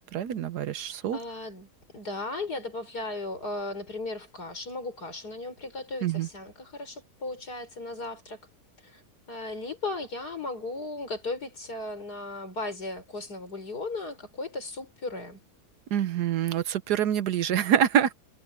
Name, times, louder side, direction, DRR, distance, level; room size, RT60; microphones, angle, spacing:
voice 1, 0.1-1.2 6.0-6.3 15.9-18.1, right 9 dB, 90° right, 1.5 m, -26 dB
voice 2, 0.7-1.7 1.9-8.4 8.8-9.0 9.3-15.4, left 2 dB, 80° left, 6.2 m, -36 dB
omnidirectional pair, 1.7 m